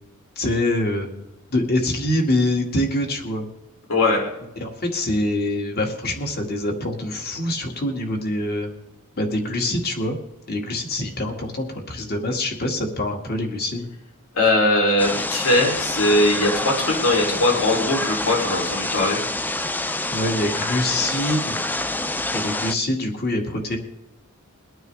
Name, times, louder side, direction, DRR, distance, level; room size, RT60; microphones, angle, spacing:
voice 1, 0.4-1.1 1.5-3.5 4.6-8.8 9.2-10.2 10.5-13.9 19.8-21.6 22.3-23.8, left 1 dB, 45° left, 2 dB, 2.1 m, -25 dB
voice 2, 3.9-4.2 14.3-19.2, left 2 dB, 65° left, 0 dB, 3.2 m, -20 dB
sound 1, 15.0-22.7, left 2 dB, 10° left, 0.4 m, -27 dB
23.0 x 9.1 x 3.4 m, 0.88 s
head